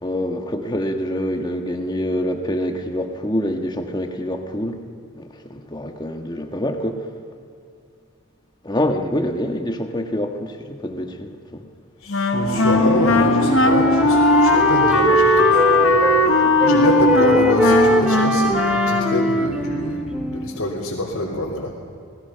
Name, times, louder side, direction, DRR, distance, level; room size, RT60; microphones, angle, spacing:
voice 1, 0.0-4.8 5.1-7.1 8.6-11.6 16.2-16.6, equal, 20° left, 5 dB, 1.4 m, -26 dB
voice 2, 12.0-21.7, left 1 dB, 80° left, -6 dB, 3.2 m, -26 dB
Wind instrument woodwind instrument, 12.1-19.4, left 2 dB, 60° left, 1.3 m, -18 dB
Piano, 12.3-17.9, equal, 20° right, 5.1 m, -29 dB
Wind instrument woodwind instrument 2, 12.7-16.3 16.6-20.6, equal, 5° right, 1.4 m, -22 dB
27.5 x 19.5 x 5.8 m, 2.4 s
head